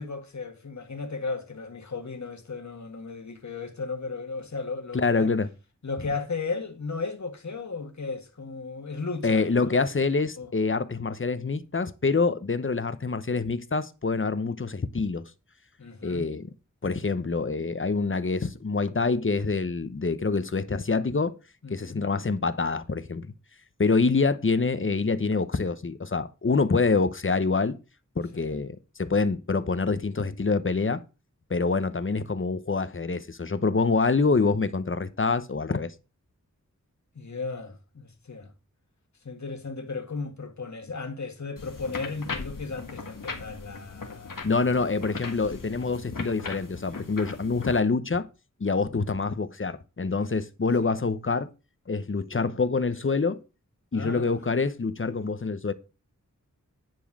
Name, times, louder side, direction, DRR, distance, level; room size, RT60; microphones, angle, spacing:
voice 1, 0.0-5.3 5.8-9.7 10.4-10.5 15.8-16.3 21.6-22.1 28.3-28.6 37.2-38.5 39.2-44.8 50.8-51.0 53.9-54.3, left 4 dB, 60° left, 1.8 m, -35 dB
voice 2, 4.9-5.5 9.2-15.3 16.0-16.5 16.8-21.3 21.7-23.3 23.8-27.8 28.2-31.0 31.5-35.9 44.4-48.3 48.6-51.5 51.9-53.4 53.9-55.7, left 4 dB, 40° left, 0.9 m, -26 dB
sound 1, 41.6-47.8, left 4 dB, 90° left, 1.7 m, -39 dB
10.5 x 4.6 x 6.1 m
wide cardioid pair, 70°, 32 cm